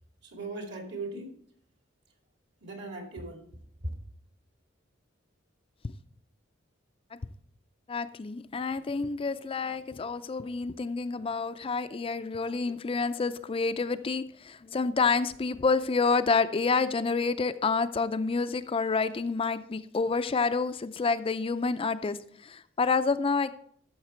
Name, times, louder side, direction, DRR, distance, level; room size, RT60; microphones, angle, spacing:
voice 1, 0.2-1.3 2.6-3.4 3.8-3.9, right 2 dB, 60° right, 3 dB, 2.5 m, -38 dB
voice 2, 7.9-23.5, left 4 dB, 30° left, 10 dB, 0.4 m, -28 dB
13.5 x 6.6 x 4.4 m, 0.62 s
head